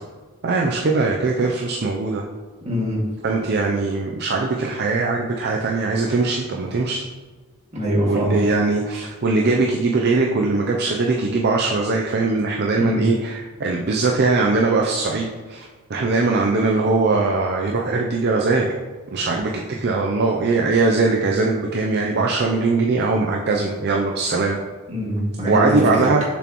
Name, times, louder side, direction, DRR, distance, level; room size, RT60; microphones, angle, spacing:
voice 1, 0.4-2.2 3.2-7.0 8.0-18.7 19.1-19.5 19.8-24.6 25.5-26.2, right 3 dB, 50° right, 0 dB, 0.5 m, -21 dB
voice 2, 2.6-3.0 7.7-8.4 12.8-13.1 24.9-25.7, equal, 30° right, -5 dB, 1.9 m, -23 dB
6.9 x 6.0 x 3.0 m, 1.4 s
head